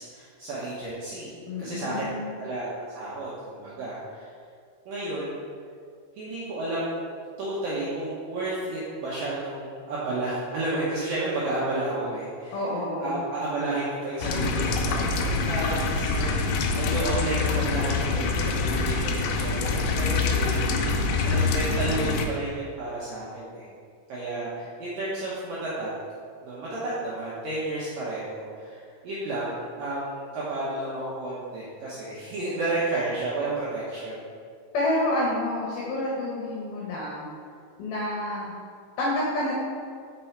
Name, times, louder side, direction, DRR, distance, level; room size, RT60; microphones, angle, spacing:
voice 1, 0.0-1.3 1.6-4.3 4.9-5.4 6.1-7.0 7.4-12.6 13.0-23.7 24.1-25.9 26.4-34.3, right 2 dB, 75° right, -8 dB, 2.1 m, -32 dB
voice 2, 1.5-2.3 12.5-13.2 34.7-37.3 37.8-38.6 39.0-39.5, left 1 dB, 70° left, -4 dB, 2.4 m, -28 dB
sound 1, 14.2-22.3, left 4 dB, 90° left, 2.4 m, -25 dB
6.1 x 5.7 x 4.5 m, 2.2 s
omnidirectional pair, 5.4 m